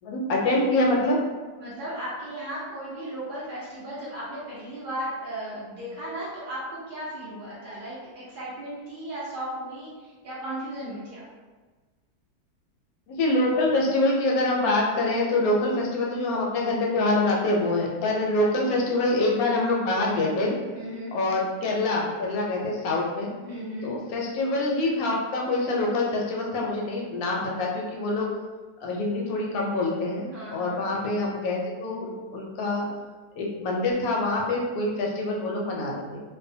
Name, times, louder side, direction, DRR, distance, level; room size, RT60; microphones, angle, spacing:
voice 1, 0.0-1.2 13.1-20.5 21.1-23.3 23.8-28.3 28.8-32.9 33.3-36.2, left 2 dB, 70° left, -2 dB, 0.9 m, -25 dB
voice 2, 1.6-11.3 15.6-16.0 18.5-18.8 20.7-21.2 23.4-23.9 30.3-30.8, right 1 dB, 85° right, -9 dB, 0.4 m, -36 dB
2.7 x 2.1 x 2.6 m, 1.3 s
omnidirectional pair, 1.8 m